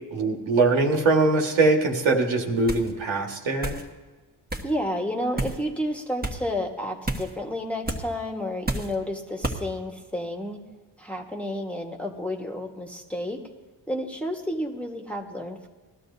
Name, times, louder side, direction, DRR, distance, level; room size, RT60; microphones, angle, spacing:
voice 1, 0.1-3.7, right 3 dB, 75° right, 0 dB, 1.9 m, -22 dB
sound 1, 2.7-2.9 3.6-3.9 4.5-4.7 5.4-5.6 6.2-6.4 7.1-7.3 7.9-8.0 8.7-8.9 9.4-9.6, right 2 dB, 20° right, 1.5 m, -29 dB
voice 2, 4.6-10.6 11.0-13.4 13.9-15.7, left 1 dB, 5° left, 1 dB, 1.6 m, -31 dB
19.0 x 12.5 x 2.8 m, 1.2 s
cardioid pair, 60°, 47 cm